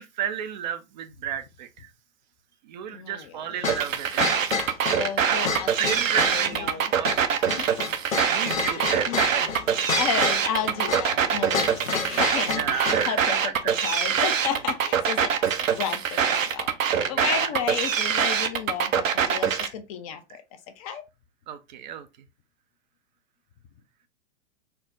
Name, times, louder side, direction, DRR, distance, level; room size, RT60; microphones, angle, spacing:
voice 1, 0.0-1.9 2.7-4.3 5.2-7.8 8.3-9.5 12.4-13.2 13.4-13.7 17.1-17.5 21.5-22.1, right 9 dB, 35° right, 0.4 m, -33 dB
voice 2, 2.9-3.5 4.9-6.9 7.6-7.8 8.8-9.2 9.9-20.4 20.8-21.0, left 8 dB, 30° left, 0.5 m, -33 dB
sound 1, 3.6-13.1, left 5 dB, 85° left, 0.9 m, -30 dB
sound 2, 3.7-19.7, right 7 dB, 75° right, 0.7 m, -24 dB
4.3 x 2.0 x 3.9 m
figure-of-eight pair, 110°, 39 cm